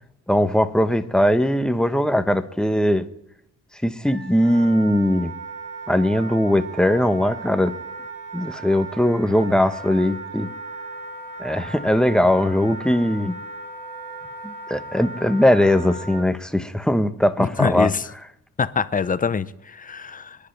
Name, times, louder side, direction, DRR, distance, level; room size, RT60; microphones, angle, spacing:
voice 1, 0.3-3.0 3.8-5.3 5.9-7.7 8.3-10.5 11.4-13.4 14.4-17.9, left 1 dB, 5° left, 1.1 m, -20 dB
Wind instrument woodwind instrument, 4.0-16.2, right 3 dB, 80° right, 4.6 m, -37 dB
voice 2, 17.4-18.0 18.6-20.4, left 5 dB, 25° left, 0.7 m, -24 dB
27.5 x 10.5 x 3.4 m
cardioid pair, 90°, 30 cm